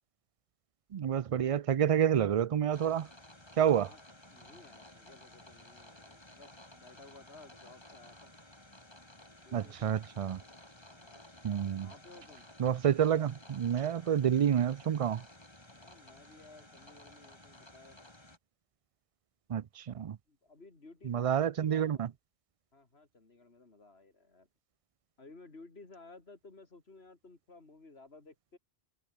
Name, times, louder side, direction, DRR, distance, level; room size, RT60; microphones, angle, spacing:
voice 1, 0.9-3.1 3.6-3.9 9.5-10.4 11.4-11.9 12.6-15.2 19.5-20.2 21.1-22.1, right 9 dB, 60° right, 0.3 m, -29 dB
sound 1, 2.7-18.4, left 1 dB, 25° left, 3.4 m, -55 dB
voice 2, 4.3-8.3 9.4-9.9 10.8-11.3 11.8-12.5 15.7-18.0 20.3-22.1 22.7-24.5 25.2-28.6, left 3 dB, 65° left, 3.4 m, -56 dB
omnidirectional pair, 1.1 m